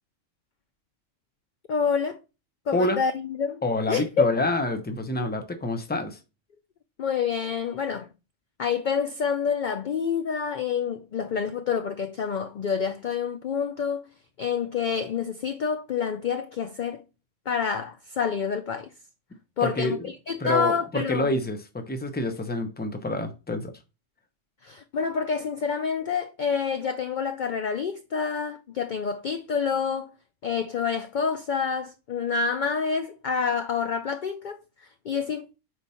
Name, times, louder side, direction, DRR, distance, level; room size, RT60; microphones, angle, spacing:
voice 1, 1.7-2.2 2.7-3.6 3.9-4.3 7.0-8.1 8.6-14.0 14.4-17.0 17.5-18.9 19.6-21.3 24.6-30.1 30.4-35.4, left 6 dB, 60° left, 0.5 m, -28 dB
voice 2, 3.6-6.2 19.6-20.1 20.4-23.7, left 2 dB, 10° left, 0.6 m, -27 dB
4.7 x 4.2 x 5.5 m
omnidirectional pair, 1.3 m